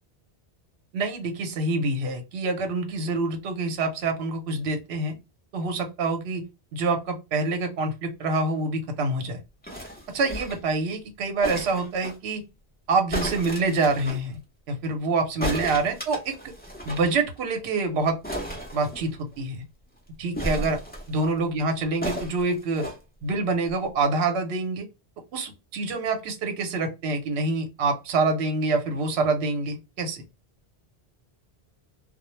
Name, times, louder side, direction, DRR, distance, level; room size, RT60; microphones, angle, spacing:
voice 1, 0.9-5.2 5.5-6.4 6.7-9.4 10.1-12.4 12.9-14.4 14.7-16.5 16.8-18.2 18.7-19.6 20.2-20.8 21.1-22.9 23.2-24.9 25.3-30.2, right 3 dB, 75° right, 5 dB, 0.9 m, -26 dB
sound 1, 9.6-10.7 11.4-12.2 13.1-14.2 15.4-17.1 17.4-17.5 17.7-17.8 18.2-19.4 20.3-21.3 22.0-23.0 23.7-23.8, equal, 10° left, 0.5 m, -34 dB
2.1 x 2.0 x 3.0 m, 0.26 s
omnidirectional pair, 1.1 m